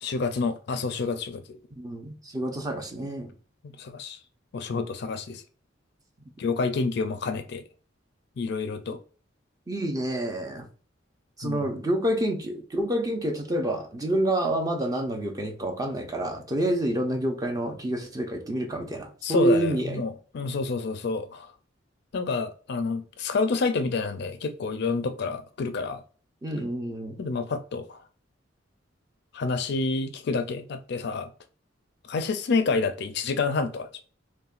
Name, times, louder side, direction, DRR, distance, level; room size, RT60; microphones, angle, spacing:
voice 1, 0.0-1.6 3.6-4.2 4.5-5.4 6.4-7.6 8.4-9.0 11.4-11.6 19.2-21.5 22.1-26.0 27.2-28.0 29.3-31.3 32.1-34.0, left 4 dB, 60° left, 0.4 m, -28 dB
voice 2, 1.7-3.3 8.9-9.0 9.7-10.7 11.4-20.0 26.4-27.2, right 1 dB, 20° right, 0.6 m, -28 dB
5.5 x 2.2 x 2.4 m
head